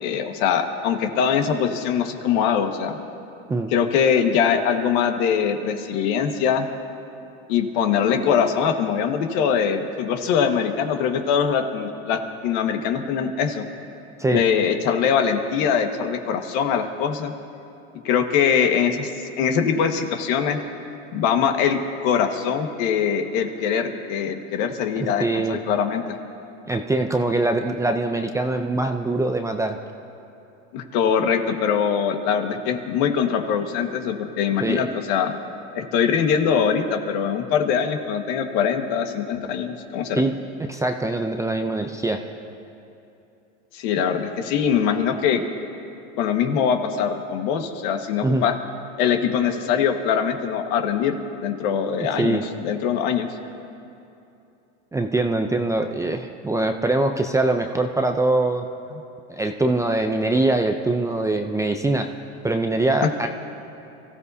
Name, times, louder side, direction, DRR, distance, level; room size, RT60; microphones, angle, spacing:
voice 1, 0.0-3.0 3.7-6.7 7.5-13.6 14.3-17.3 18.1-19.1 19.4-20.6 21.1-26.0 30.7-35.4 35.8-40.2 43.7-45.4 46.2-48.6 49.0-51.1 51.4-53.3, left 7 dB, 60° left, 5 dB, 1.6 m, -22 dB
voice 2, 25.0-25.6 26.7-29.8 34.6-34.9 40.1-42.2 48.2-48.4 52.2-52.4 54.9-58.7 59.3-62.1 62.4-63.3, right 2 dB, 10° right, 4 dB, 0.5 m, -23 dB
29.0 x 15.0 x 2.8 m, 2.7 s
supercardioid pair, 125°, 36 cm